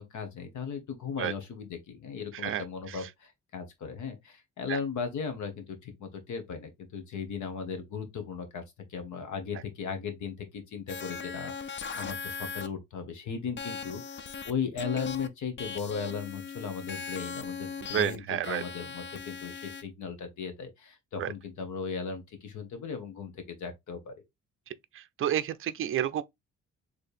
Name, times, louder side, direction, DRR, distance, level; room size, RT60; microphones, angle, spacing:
voice 1, 0.0-8.6 8.9-24.2, left 6 dB, 75° left, 1.4 m, -37 dB
voice 2, 2.4-3.0 4.7-4.8 17.9-18.6 21.2-21.3 25.2-26.2, right 11 dB, 45° right, 0.4 m, -30 dB
sound 1, 10.9-12.7 13.6-14.5 14.8-15.3 15.6-18.2 18.4-19.8, left 5 dB, 40° left, 0.5 m, -39 dB
4.4 x 3.4 x 3.4 m
cardioid pair, 145°, 30 cm